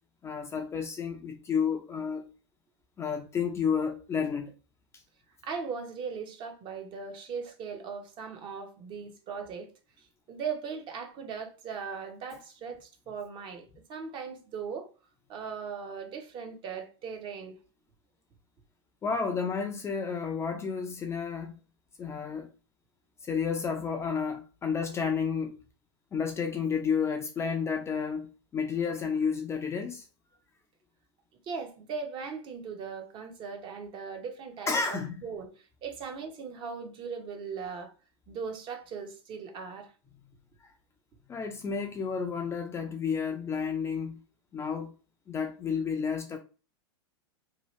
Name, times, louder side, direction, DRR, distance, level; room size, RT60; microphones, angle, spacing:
voice 1, 0.2-2.3 3.0-4.5 19.0-21.5 22.0-22.5 23.2-25.6 26.1-28.3 28.5-30.0 34.7-35.2 41.3-44.2 44.5-44.9 45.3-46.4, left 6 dB, 20° left, 0.4 m, -31 dB
voice 2, 5.4-9.7 10.3-14.9 15.3-17.6 31.5-35.5 35.8-37.9 38.3-39.9, right 6 dB, 35° right, 0.7 m, -39 dB
2.8 x 2.3 x 3.0 m
hypercardioid pair, 120°, 15 cm